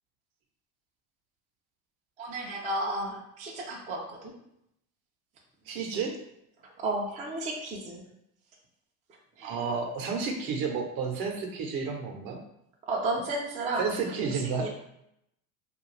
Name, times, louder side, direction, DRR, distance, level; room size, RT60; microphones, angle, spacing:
voice 1, 2.2-4.3 6.8-8.0 9.4-9.6 12.9-13.9 14.2-14.7, right 2 dB, 15° right, -2 dB, 0.4 m, -33 dB
voice 2, 5.7-6.2 9.4-12.4 13.7-14.7, right 5 dB, 50° right, 2 dB, 0.8 m, -31 dB
2.4 x 2.3 x 3.2 m, 0.77 s
hypercardioid pair, 95°, 47 cm